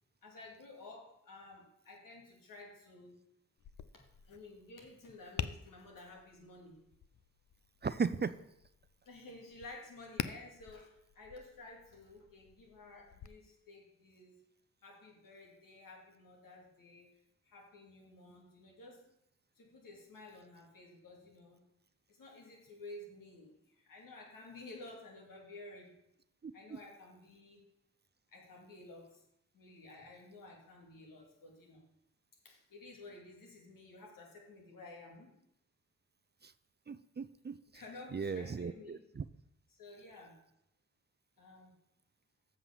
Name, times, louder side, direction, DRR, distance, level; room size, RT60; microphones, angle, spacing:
voice 1, 0.2-3.2 4.3-6.8 9.0-14.4 14.8-17.1 17.4-19.0 19.6-21.6 22.1-25.9 26.5-27.7 28.3-29.2 29.5-31.8 32.4-35.3 37.7-39.0 39.7-40.4 41.4-41.7, left 2 dB, 85° left, 0 dB, 2.6 m, -53 dB
Tap, 3.6-13.3, left 8 dB, 65° left, 0.6 m, -47 dB
voice 2, 7.8-8.3 26.4-26.8 36.4-36.5 36.9-37.8 38.1-39.2, right 5 dB, 30° right, 15 dB, 0.6 m, -37 dB
7.6 x 5.9 x 7.0 m, 0.79 s
supercardioid pair, 40°, 33 cm